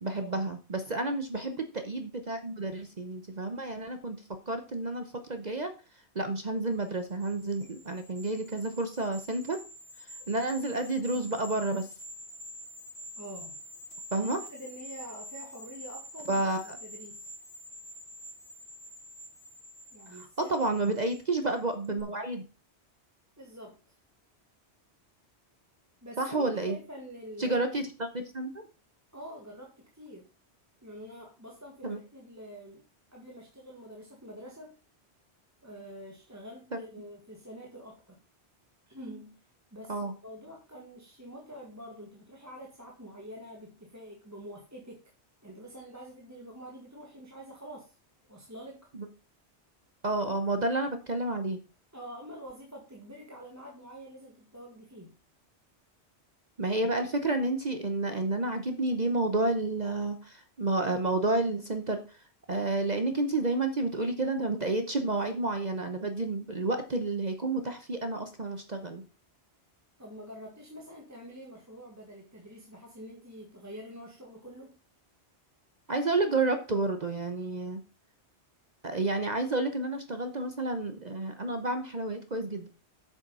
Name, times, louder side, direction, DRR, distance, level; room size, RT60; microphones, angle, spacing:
voice 1, 0.0-5.7 6.1-9.6 10.3-11.9 14.1-14.4 16.3-16.8 20.2-22.4 26.2-26.8 27.4-28.5 31.8-32.0 36.7-36.8 39.9-40.1 48.9-49.1 50.0-51.6 56.6-62.2 62.5-69.0 75.9-77.8 78.8-82.7, right 2 dB, 40° right, 1.1 m, -30 dB
sound 1, 6.9-21.5 21.8-22.0, equal, 85° left, 3.3 m, -47 dB
voice 2, 13.2-13.6 14.2-16.4 16.8-17.3 19.9-20.8 23.4-24.0 26.0-27.7 29.1-30.3 30.8-34.8 35.6-38.2 38.9-39.4 39.7-45.1 45.4-48.0 48.3-48.9 51.9-55.2 70.0-74.7, equal, 15° right, 1.9 m, -46 dB
8.3 x 7.1 x 5.5 m
omnidirectional pair, 1.1 m